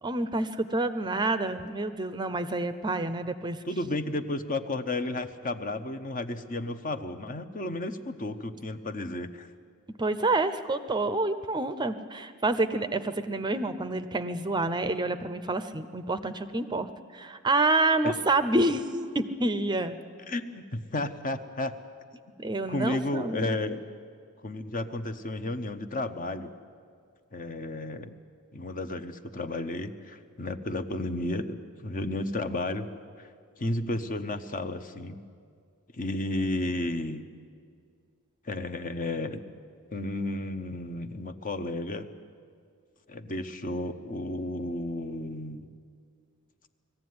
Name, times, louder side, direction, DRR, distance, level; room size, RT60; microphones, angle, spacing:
voice 1, 0.0-3.6 10.0-20.0 22.4-23.6, right 2 dB, 20° right, 10 dB, 0.6 m, -28 dB
voice 2, 3.7-9.5 18.0-18.1 20.3-21.7 22.7-23.8 24.4-26.5 27.3-28.1 28.5-32.9 33.2-33.3 33.6-35.2 35.9-37.2 38.4-39.4 39.9-42.1 43.1-45.7, left 2 dB, 35° left, 9 dB, 0.9 m, -32 dB
20.0 x 15.0 x 9.5 m, 2.1 s
head